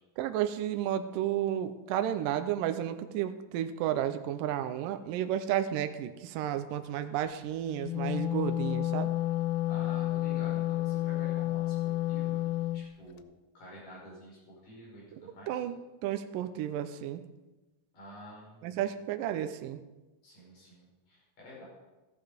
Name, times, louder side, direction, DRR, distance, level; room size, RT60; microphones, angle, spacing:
voice 1, 0.2-9.1 15.1-15.2 15.5-17.2 18.6-19.8, right 11 dB, 80° right, 9 dB, 2.1 m, -32 dB
Wind instrument woodwind instrument, 7.7-12.8, left 14 dB, 80° left, 2.4 m, -30 dB
voice 2, 9.7-12.4 12.7-13.2 13.6-15.6 17.9-18.8 20.2-21.6, left 1 dB, 55° left, -6 dB, 7.1 m, -49 dB
14.5 x 10.5 x 5.0 m, 1.1 s
omnidirectional pair, 4.5 m